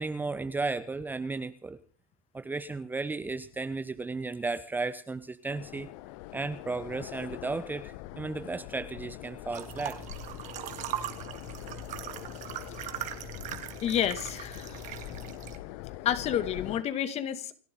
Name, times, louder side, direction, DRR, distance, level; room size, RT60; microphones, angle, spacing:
voice 1, 0.0-1.8 2.3-5.9 6.3-10.0, right 3 dB, 10° right, 12 dB, 0.9 m, -34 dB
sound 1, 5.5-16.8, left 15 dB, 50° left, 1.0 m, -43 dB
sound 2, 9.5-15.6, right 11 dB, 40° right, 2.2 m, -40 dB
voice 2, 13.8-14.8 16.0-17.5, left 10 dB, 35° left, 11 dB, 2.0 m, -29 dB
29.0 x 12.0 x 3.8 m, 0.42 s
hypercardioid pair, 105°, 19 cm